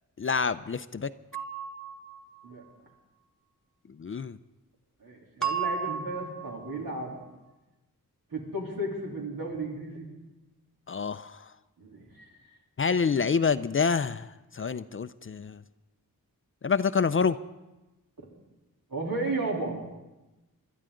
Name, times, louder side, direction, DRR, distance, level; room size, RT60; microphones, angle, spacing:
voice 1, 0.2-1.1 4.0-4.4 10.9-11.5 12.8-15.6 16.6-17.4, left 5 dB, 35° left, 14 dB, 0.4 m, -27 dB
sound 1, 1.3-2.5 5.4-6.8, right 7 dB, ahead, 1.3 m, -33 dB
voice 2, 5.0-7.1 8.3-10.1 11.8-12.3 18.9-19.8, right 2 dB, 75° right, -3 dB, 3.4 m, -34 dB
21.0 x 12.0 x 3.8 m, 1.1 s
wide cardioid pair, 75°, 35 cm